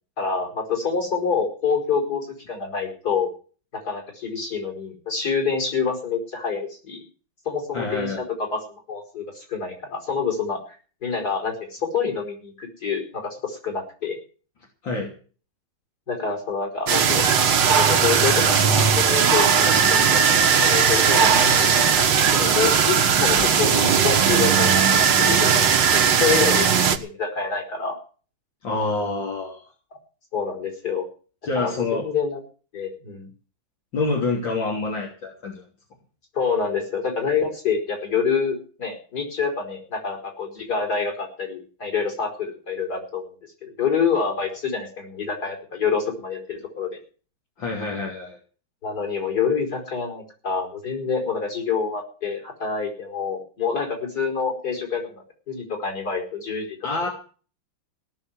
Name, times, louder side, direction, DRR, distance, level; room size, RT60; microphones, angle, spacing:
voice 1, 0.2-3.3 3.9-7.0 7.5-8.6 8.9-10.6 11.0-14.2 16.1-28.0 30.3-31.1 31.6-32.4 32.7-33.3 36.3-43.3 43.6-47.0 48.8-57.1, left 5 dB, 45° left, 2 dB, 5.5 m, -27 dB
voice 2, 7.7-8.2 14.8-15.1 28.6-29.6 31.4-32.1 33.9-35.6 47.6-48.4 56.8-57.1, left 3 dB, 60° left, -1 dB, 3.9 m, -27 dB
sound 1, 16.9-27.0, right 7 dB, 60° right, 2.0 m, -18 dB
17.5 x 7.1 x 9.6 m, 0.40 s
omnidirectional pair, 2.3 m